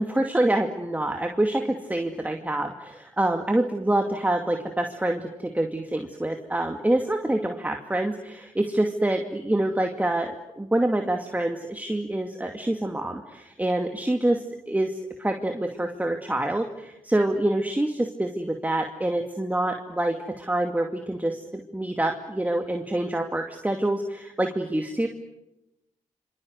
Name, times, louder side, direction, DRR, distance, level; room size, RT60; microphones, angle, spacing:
voice 1, 0.0-14.4 14.7-14.9 15.2-25.1, right 1 dB, 10° right, 4 dB, 2.4 m, -26 dB
26.5 x 25.5 x 8.1 m, 0.90 s
cardioid pair, 65°, 13 cm